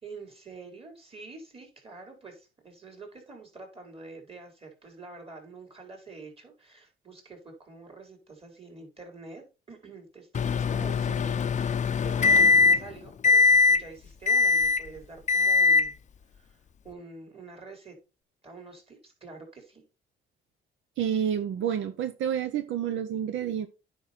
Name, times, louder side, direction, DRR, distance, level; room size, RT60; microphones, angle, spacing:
voice 1, 0.0-16.0 16.3-16.6 16.8-18.0 18.4-19.8, right 3 dB, 30° right, 3 dB, 4.2 m, -46 dB
Microwave oven, 10.3-12.9 13.2-13.8 14.3-14.9 15.3-15.9, left 4 dB, 35° left, 0.5 m, -21 dB
voice 2, 21.0-23.7, right 9 dB, 80° right, 10 dB, 0.8 m, -29 dB
9.4 x 5.4 x 4.2 m, 0.30 s
cardioid pair, 90°, 20 cm